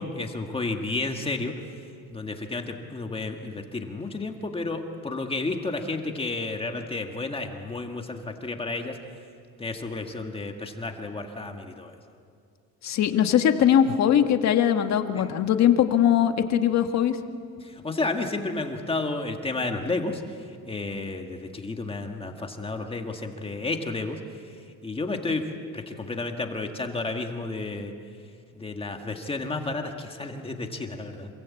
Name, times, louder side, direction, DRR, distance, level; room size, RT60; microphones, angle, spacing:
voice 1, 0.0-1.5 2.1-9.0 9.6-12.0 15.2-15.3 17.6-20.4 20.7-25.5 25.7-27.9 28.5-31.3, left 3 dB, 15° left, 4 dB, 1.7 m, -31 dB
voice 2, 12.8-17.2, left 9 dB, 55° left, 6 dB, 1.7 m, -21 dB
27.0 x 23.5 x 8.5 m, 2.3 s
cardioid pair, 145°, 32 cm